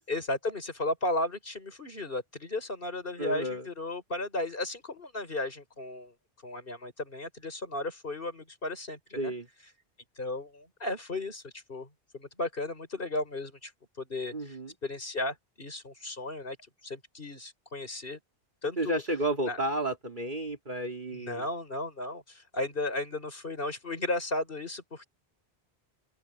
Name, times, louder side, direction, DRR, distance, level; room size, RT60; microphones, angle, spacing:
voice 1, 0.1-6.1 6.4-9.3 10.2-11.9 12.1-13.7 14.0-16.6 16.8-18.2 18.6-19.0 19.5-19.6 21.1-25.1, left 2 dB, 55° left, 5.5 m, -35 dB
voice 2, 3.2-3.6 9.2-9.5 14.3-14.7 18.8-21.4, right 1 dB, 45° right, 3.1 m, -32 dB
open air
omnidirectional pair, 1.1 m